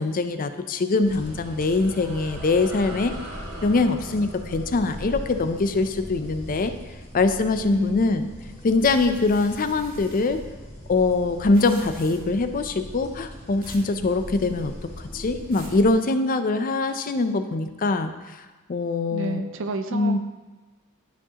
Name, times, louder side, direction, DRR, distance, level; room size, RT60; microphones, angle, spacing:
voice 1, 0.0-3.1 3.6-6.7 7.1-8.3 8.6-10.4 10.9-18.4 18.7-19.4 19.9-20.2, left 3 dB, 40° left, 9 dB, 0.4 m, -23 dB
sound 1, 0.7-7.6, right 1 dB, 85° right, 1.7 m, -44 dB
sound 2, 1.0-15.9, equal, 10° left, 2.2 m, -40 dB
voice 2, 7.7-8.2 19.1-20.2, right 2 dB, 55° right, 8 dB, 0.4 m, -30 dB
sound 3, 8.8-10.4 11.4-12.4 13.6-13.9 14.3-14.7 15.2-15.8, right 2 dB, 40° right, 1.9 m, -47 dB
12.5 x 4.7 x 2.9 m, 1.2 s
head